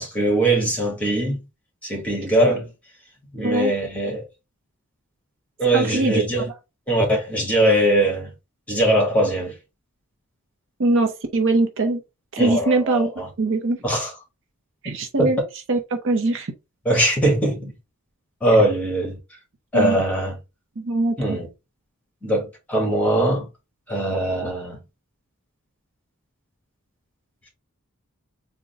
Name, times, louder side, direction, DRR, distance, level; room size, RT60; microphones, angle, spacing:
voice 1, 0.0-1.4 1.8-2.7 3.3-4.2 5.6-6.5 6.9-8.3 8.7-9.5 12.4-13.2 13.8-14.1 15.2-15.3 16.8-17.7 18.4-19.2 19.7-20.3 21.2-21.5 22.2-23.5 23.9-24.8, right 1 dB, 5° left, 1.5 m, -21 dB
voice 2, 5.7-6.2 10.8-12.0 12.3-13.1 13.4-13.8 14.8-15.4 15.7-16.5 19.7-20.0 20.8-21.4, right 2 dB, 60° right, 0.7 m, -22 dB
3.8 x 2.2 x 4.0 m
head